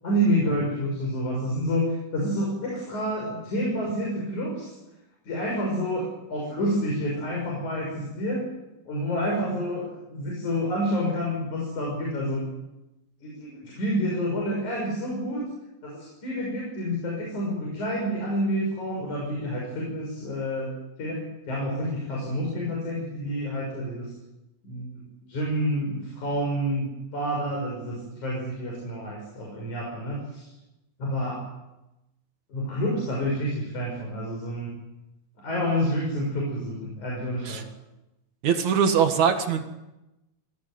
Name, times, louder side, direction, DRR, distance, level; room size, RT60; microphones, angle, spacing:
voice 1, 0.0-4.7 5.3-8.5 8.9-12.5 13.2-15.4 15.8-24.1 24.6-30.5 31.0-31.4 32.5-34.7 35.4-37.7, equal, 90° left, -2 dB, 7.9 m, -28 dB
voice 2, 38.4-39.7, right 7 dB, 75° right, 6 dB, 3.3 m, -22 dB
25.0 x 17.0 x 9.5 m, 0.96 s
omnidirectional pair, 3.3 m